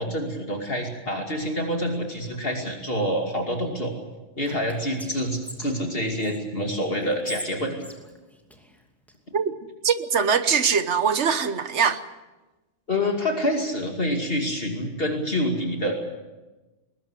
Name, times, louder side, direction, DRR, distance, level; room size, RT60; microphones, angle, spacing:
voice 1, 0.0-3.9 4.4-7.8 12.9-16.0, equal, 50° left, 2.8 m, -27 dB
Whispering, 4.4-6.4 7.0-9.2, equal, ahead, 2.6 m, -42 dB
voice 2, 9.8-12.0, right 6 dB, 65° right, 1.4 m, -22 dB
21.5 x 19.5 x 8.3 m
omnidirectional pair, 1.2 m